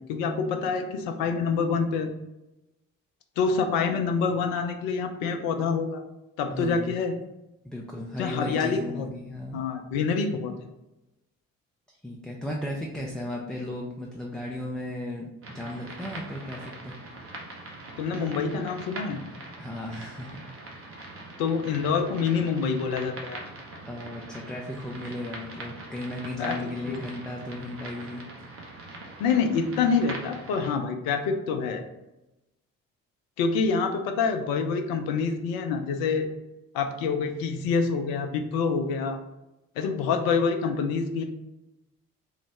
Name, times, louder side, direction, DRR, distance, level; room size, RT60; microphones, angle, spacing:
voice 1, 0.0-2.1 3.4-6.0 6.4-7.2 8.2-9.1 9.5-10.7 18.0-19.2 21.4-23.4 26.4-26.6 26.9-27.0 29.2-31.8 33.4-36.3 36.7-39.2 39.8-41.2, left 5 dB, 60° left, 5 dB, 0.6 m, -26 dB
voice 2, 6.5-7.0 7.6-9.6 12.0-17.0 19.6-20.4 23.9-28.2, left 1 dB, ahead, -3 dB, 0.4 m, -35 dB
sound 1, 15.4-30.7, right 2 dB, 35° right, 0.9 m, -42 dB
3.9 x 2.0 x 3.2 m, 0.95 s
figure-of-eight pair, 45°, 40 cm